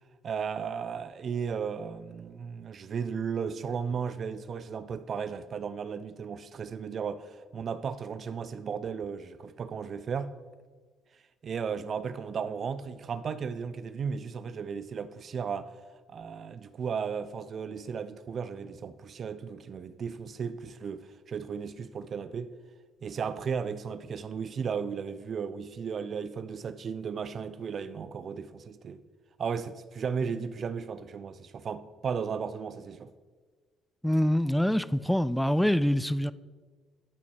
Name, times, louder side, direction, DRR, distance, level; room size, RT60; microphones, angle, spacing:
voice 1, 0.2-10.4 11.4-15.7 16.1-22.5 23.0-29.0 29.4-33.1, right 6 dB, 50° right, 0.5 m, -35 dB
voice 2, 34.0-36.3, equal, 5° left, 0.4 m, -25 dB
11.5 x 5.9 x 4.6 m
hypercardioid pair, 50°, 0 cm